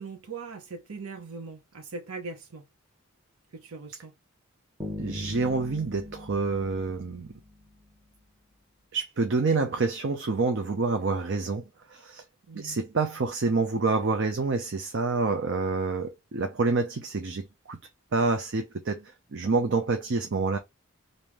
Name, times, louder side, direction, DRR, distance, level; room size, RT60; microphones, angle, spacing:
voice 1, 0.0-2.6 3.5-4.1 12.5-12.8, right 4 dB, 90° right, 0.9 m, -40 dB
sound 1, 4.8-7.8, left 2 dB, 10° right, 0.9 m, -40 dB
voice 2, 5.0-7.3 8.9-11.6 11.9-12.2 12.5-17.8 18.1-20.6, right 3 dB, 55° right, 0.6 m, -27 dB
3.5 x 2.7 x 3.0 m
head